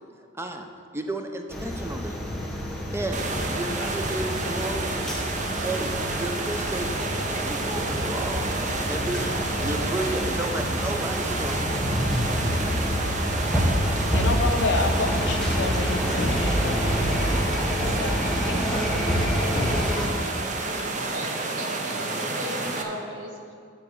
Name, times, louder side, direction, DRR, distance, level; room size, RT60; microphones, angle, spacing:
voice 1, 0.3-0.7 0.9-2.2 2.9-3.2 3.5-5.0 5.6-6.9 7.4-8.6 8.9-9.3 9.6-11.8, right 1 dB, 15° right, 5 dB, 0.6 m, -32 dB
sound 1, 1.5-20.1, equal, 5° left, 1.1 m, -27 dB
sound 2, 3.1-22.8, right 3 dB, 40° right, 0.8 m, -30 dB
voice 2, 14.1-18.2 18.4-18.8, left 2 dB, 80° left, 5 dB, 1.0 m, -30 dB
sound 3, 15.9-16.5 17.6-18.0 19.0-19.9 20.6-21.0, left 2 dB, 30° left, 0.5 m, -37 dB
voice 3, 21.1-23.5, right 1 dB, 75° right, 0 dB, 1.5 m, -37 dB
9.6 x 5.1 x 7.1 m, 2.2 s
head